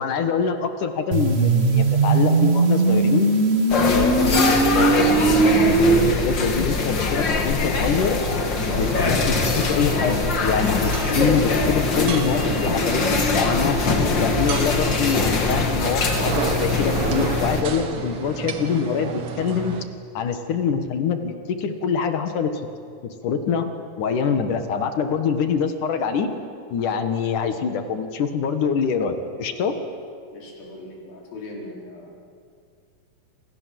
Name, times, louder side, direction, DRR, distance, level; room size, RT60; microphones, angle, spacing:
voice 1, 0.0-3.3 3.7-5.1 5.3-8.2 8.6-13.8 14.2-19.8 20.1-22.5 23.0-23.7 24.0-26.3 26.7-29.7, left 6 dB, 65° left, 8 dB, 3.1 m, -25 dB
sound 1, 1.1-6.1, right 4 dB, 85° right, 0.5 m, -19 dB
sound 2, 3.7-17.6, left 4 dB, 35° left, 2.4 m, -22 dB
sound 3, 8.7-19.9, right 6 dB, 50° right, 2.1 m, -31 dB
voice 2, 30.3-32.3, left 2 dB, 80° left, -1 dB, 6.4 m, -39 dB
27.5 x 27.5 x 7.8 m, 2.2 s
omnidirectional pair, 4.0 m